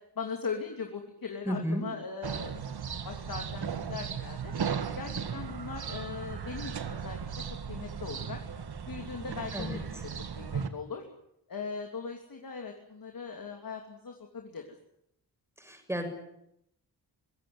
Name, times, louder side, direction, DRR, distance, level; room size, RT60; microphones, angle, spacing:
voice 1, 0.1-2.6 3.0-4.5 5.0-8.4 8.9-10.0 10.3-11.0 11.5-14.7, left 5 dB, 55° left, 3 dB, 3.0 m, -39 dB
voice 2, 1.5-1.8 9.5-9.8 15.6-16.1, equal, 5° right, 5 dB, 6.8 m, -32 dB
sound 1, 2.2-10.7, right 7 dB, 70° right, 1.9 m, -36 dB
24.5 x 16.0 x 9.6 m, 0.77 s
wide cardioid pair, 95°, 40 cm